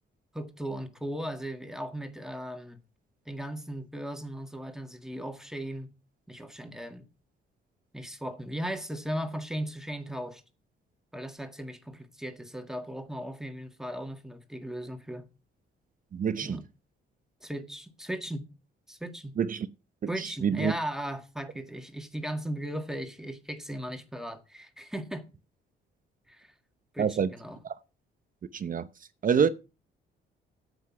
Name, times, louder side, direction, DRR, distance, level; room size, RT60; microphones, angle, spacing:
voice 1, 0.3-2.8 3.3-5.9 6.3-7.1 7.9-10.4 11.1-15.3 16.4-16.6 17.4-18.4 18.9-19.3 20.1-25.3 26.3-26.5 26.9-27.6, equal, ahead, 1.8 m, -37 dB
voice 2, 16.1-16.6 19.4-19.7 20.2-20.7 27.0-27.3 27.6-27.7 28.5-28.9 29.2-29.5, right 7 dB, 45° right, 0.7 m, -26 dB
9.4 x 8.0 x 5.9 m
cardioid pair, 90°, 20 cm